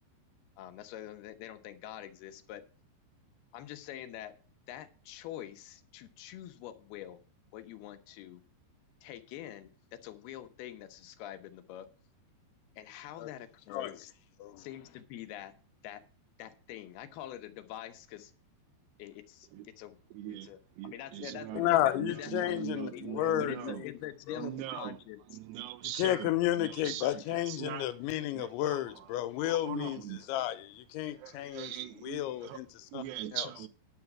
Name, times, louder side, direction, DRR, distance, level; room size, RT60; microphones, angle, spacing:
voice 1, 0.6-2.6 3.5-4.4 4.7-7.2 7.5-8.4 9.0-11.9 12.8-14.1 14.6-15.5 15.8-16.0 16.4-18.3 19.0-20.0 20.4-20.6 20.8-25.2, left 12 dB, 75° left, 2.6 m, -45 dB
voice 2, 20.1-23.9 24.4-25.0 25.3-27.9 28.3-30.3 31.0-32.6 32.9-33.7, right 13 dB, 75° right, 2.9 m, -41 dB
voice 3, 21.6-23.9 24.3-24.5 26.0-30.0 30.3-31.7 32.0-32.7 32.9-33.0 33.3-33.4, left 14 dB, 90° left, 3.2 m, -32 dB
10.5 x 7.7 x 6.0 m
omnidirectional pair, 5.2 m